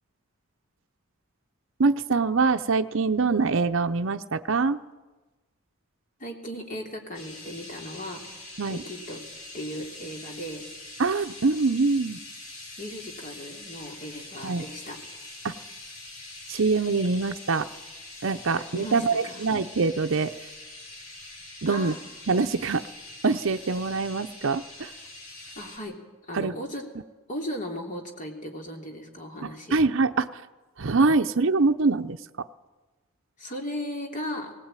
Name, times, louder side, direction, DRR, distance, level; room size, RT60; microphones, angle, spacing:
voice 1, 1.8-4.8 8.6-8.8 11.0-12.2 14.4-14.6 15.4-15.5 16.5-17.7 18.2-20.3 21.6-21.9 22.3-22.8 23.2-24.9 26.3-26.5 29.4-30.4 30.8-32.5, right 4 dB, 65° right, 7 dB, 0.7 m, -24 dB
voice 2, 6.2-8.2 8.7-9.2 9.5-10.6 12.8-15.0 18.5-19.4 21.6-22.0 25.5-26.0 26.2-26.8 27.3-29.8 33.4-34.6, equal, 40° left, 2 dB, 3.1 m, -36 dB
sound 1, 7.1-25.8, left 2 dB, 85° left, 6.1 m, -44 dB
19.0 x 18.0 x 9.0 m, 1.2 s
head